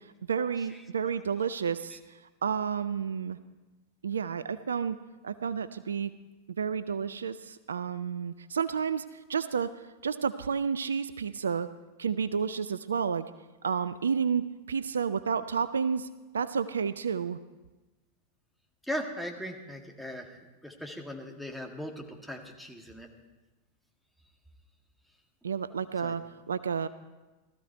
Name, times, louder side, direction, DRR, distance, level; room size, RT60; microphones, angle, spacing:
voice 1, 0.3-2.0 2.4-3.4 4.0-5.0 5.2-6.1 6.6-9.0 9.3-9.8 10.0-11.7 12.0-13.3 13.6-16.1 16.3-17.4 25.4-26.9, right 6 dB, 70° right, 14 dB, 0.4 m, -30 dB
voice 2, 18.8-23.1 26.0-26.1, equal, ahead, 1 dB, 1.8 m, -39 dB
16.5 x 14.0 x 4.6 m, 1.1 s
figure-of-eight pair, 90°, 0 cm